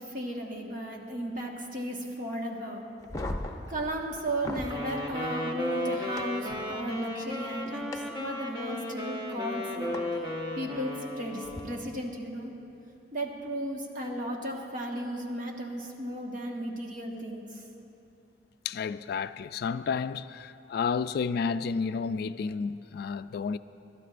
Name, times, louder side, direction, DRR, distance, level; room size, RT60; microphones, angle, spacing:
voice 1, 0.1-2.8 3.7-10.0 10.5-12.5 13.1-17.6, right 1 dB, 50° right, 1.5 m, -35 dB
sound 1, 3.0-4.8 6.2-6.3 7.9-8.0 9.9-10.0 11.4-11.6, left 1 dB, 20° left, 0.8 m, -36 dB
Wind instrument woodwind instrument, 4.6-11.9, left 1 dB, 25° right, 1.3 m, -35 dB
voice 2, 18.7-23.6, left 5 dB, 60° left, 0.3 m, -31 dB
27.0 x 12.5 x 2.5 m
head